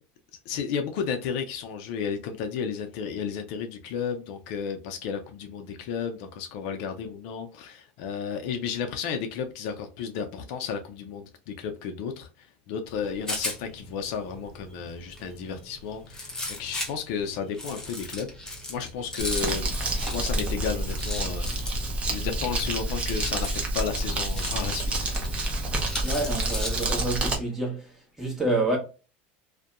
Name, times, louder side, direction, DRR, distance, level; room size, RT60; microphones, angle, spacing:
voice 1, 0.5-21.8 22.1-25.3, left 6 dB, 65° left, 0.5 m, -33 dB
Rattle, 12.9-27.0, left 1 dB, 10° left, 0.8 m, -38 dB
Crumpling crinkling, 19.2-27.4, right 2 dB, 25° right, 0.8 m, -28 dB
voice 2, 26.0-27.9 28.2-28.8, right 2 dB, 5° right, 1.2 m, -28 dB
2.6 x 2.2 x 2.4 m
supercardioid pair, 130°, 5 cm